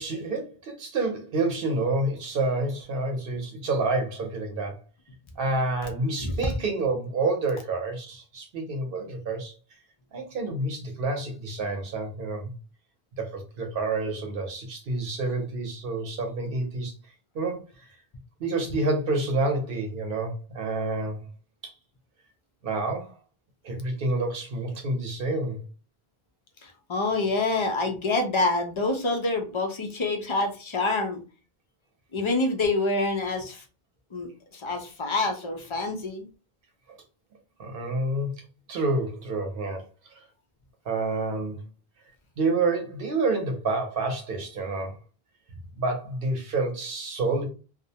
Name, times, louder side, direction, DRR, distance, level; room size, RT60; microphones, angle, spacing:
voice 1, 0.0-4.8 5.4-9.6 10.1-12.4 13.2-16.9 17.3-17.7 18.4-21.3 21.6-21.7 22.6-23.1 23.6-25.6 37.6-38.3 38.7-39.8 40.1-40.2 40.9-41.6 42.4-45.0 45.8-47.4, right 2 dB, 65° right, 0.8 m, -28 dB
voice 2, 26.6-31.2 32.1-33.6 34.1-34.3 34.5-36.3, left 2 dB, 45° left, 0.4 m, -27 dB
2.4 x 2.0 x 2.7 m
omnidirectional pair, 1.0 m